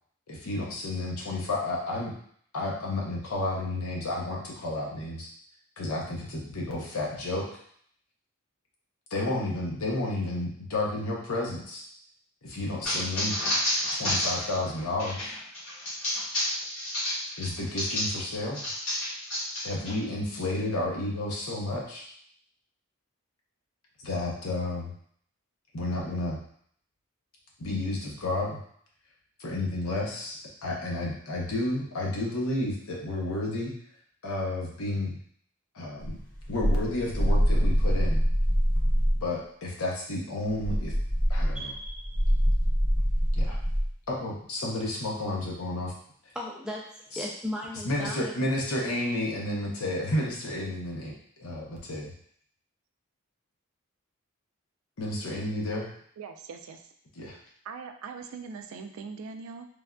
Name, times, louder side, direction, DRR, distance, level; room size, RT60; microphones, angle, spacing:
voice 1, 0.3-2.1 2.5-5.3 5.8-7.5 9.1-11.9 12.4-13.3 13.9-15.3 17.4-18.6 19.6-22.1 24.0-24.9 25.7-26.4 27.6-28.6 29.4-33.7 34.2-35.2 35.7-36.2 36.5-38.2 39.2-40.9 41.3-41.7 43.3-43.6 44.1-45.9 47.1-47.3 47.8-51.1 51.4-52.1 55.0-55.9 57.2-57.4, left 2 dB, 80° left, -2 dB, 0.8 m, -31 dB
sound 1, 12.8-18.2 18.5-19.9, left 1 dB, 65° left, 1.2 m, -30 dB
sound 2, 36.0-39.3 40.5-43.9, equal, 40° left, 0.6 m, -24 dB
voice 2, 41.5-42.2 46.3-48.3, left 1 dB, 5° right, -3 dB, 0.4 m, -37 dB
voice 3, 56.2-56.9 57.6-59.7, right 5 dB, 75° right, 6 dB, 0.3 m, -41 dB
3.4 x 2.4 x 2.2 m, 0.62 s
head